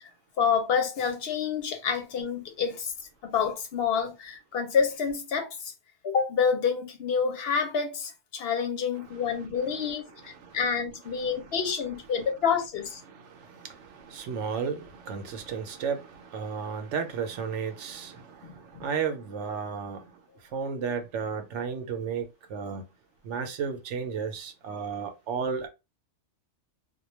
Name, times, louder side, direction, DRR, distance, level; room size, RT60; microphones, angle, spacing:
voice 1, 0.4-2.9 3.2-5.7 6.0-13.0 18.4-18.9, left 6 dB, 65° left, 0.8 m, -28 dB
voice 2, 9.0-10.6 11.2-11.5 13.0-20.0 20.5-22.9 23.2-25.7, right 6 dB, 80° right, 0.9 m, -34 dB
2.2 x 2.2 x 3.0 m
omnidirectional pair, 1.2 m